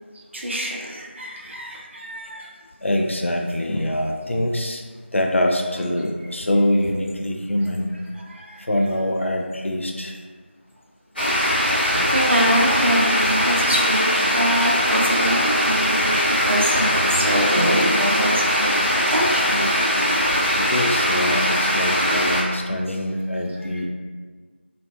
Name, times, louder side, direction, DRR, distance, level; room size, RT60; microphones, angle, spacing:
voice 1, 0.1-2.5 8.1-8.6 11.4-19.7 23.6-23.8, equal, 70° right, -2 dB, 0.5 m, -25 dB
voice 2, 2.8-4.8 5.1-8.0 8.6-10.2 15.4-15.5 20.5-23.9, left 1 dB, 90° left, 1 dB, 0.4 m, -24 dB
sound 1, 11.2-22.4, equal, 50° left, 1.0 m, -20 dB
2.5 x 2.1 x 2.2 m, 1.5 s
figure-of-eight pair, 175°, 7 cm